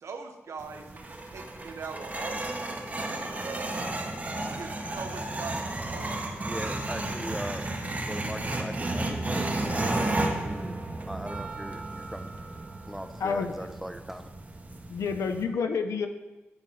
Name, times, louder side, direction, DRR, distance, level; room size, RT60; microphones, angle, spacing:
voice 1, 0.0-2.7 3.0-3.8 4.5-6.5, right 4 dB, 75° right, 5 dB, 0.8 m, -42 dB
sound 1, 0.6-15.4, right 2 dB, 30° right, 0.9 m, -33 dB
voice 2, 6.5-7.7 8.0-10.7 11.1-12.3 12.9-14.3, equal, ahead, 9 dB, 0.5 m, -39 dB
voice 3, 13.2-13.5 14.9-16.1, left 5 dB, 90° left, 7 dB, 0.5 m, -28 dB
8.8 x 3.8 x 5.4 m, 1.1 s
cardioid pair, 75°, 5 cm